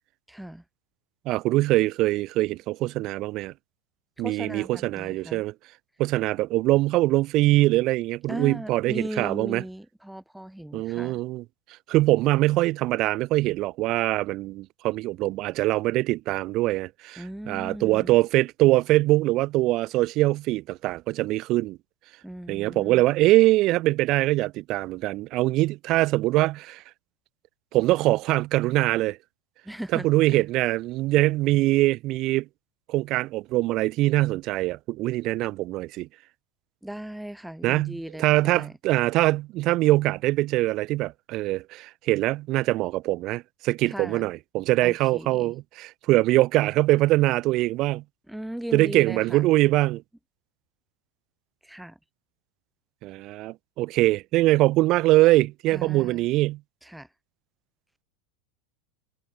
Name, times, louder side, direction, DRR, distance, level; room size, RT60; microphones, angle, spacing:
voice 1, 0.3-0.6 4.2-5.4 8.3-11.2 17.2-18.2 22.2-23.0 29.6-30.4 36.8-38.7 43.8-44.3 44.8-45.5 48.3-49.5 51.6-52.0 55.7-56.2 56.8-57.1, right 1 dB, 5° right, 2.3 m, -37 dB
voice 2, 1.3-3.5 4.2-5.5 6.0-9.6 10.7-11.4 11.9-21.8 22.5-26.8 27.7-29.2 29.9-32.5 32.9-36.1 37.6-48.0 48.7-50.0 53.0-56.6, right 18 dB, 40° right, 0.7 m, -23 dB
figure-of-eight pair, 85°, 0 cm